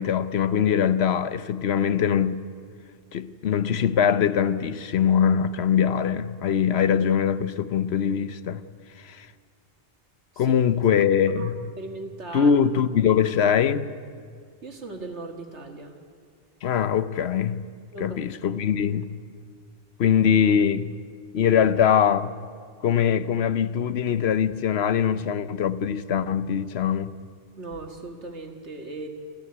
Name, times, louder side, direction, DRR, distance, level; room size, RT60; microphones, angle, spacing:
voice 1, 0.0-2.4 3.1-8.6 9.0-9.3 10.4-11.7 12.3-13.9 16.6-17.7 18.0-19.1 20.0-21.0 21.3-22.3 22.8-27.2, left 8 dB, 70° left, 1.0 m, -22 dB
voice 2, 11.4-12.5 13.1-13.2 14.6-16.0 17.9-18.5 27.6-29.1, right 2 dB, 80° right, 2.3 m, -38 dB
26.5 x 14.5 x 9.6 m
omnidirectional pair, 1.2 m